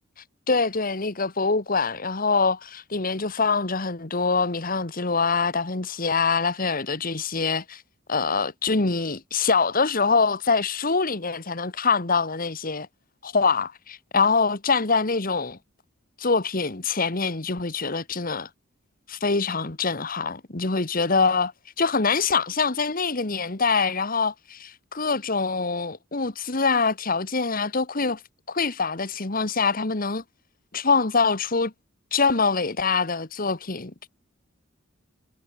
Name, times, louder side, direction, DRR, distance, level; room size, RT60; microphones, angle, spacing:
voice 1, 0.5-7.8 8.1-12.9 13.2-15.6 16.2-18.5 19.1-21.5 21.8-28.2 28.5-30.2 30.7-31.7 32.1-33.9, left 4 dB, 45° left, 1.5 m, -24 dB
head